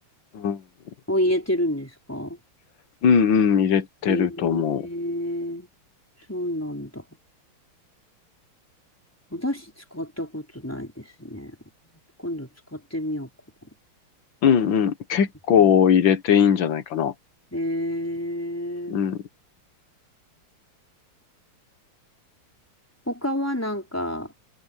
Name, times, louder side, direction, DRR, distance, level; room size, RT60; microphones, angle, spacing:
voice 1, 1.1-2.4 4.0-5.7 6.3-7.0 9.3-11.6 11.9-13.3 13.6-13.7 17.5-19.0 23.1-24.3, equal, 5° left, 5.0 m, -29 dB
voice 2, 3.0-4.8 14.4-17.1 18.9-19.2, left 7 dB, 65° left, 2.0 m, -20 dB
omnidirectional pair, 2.4 m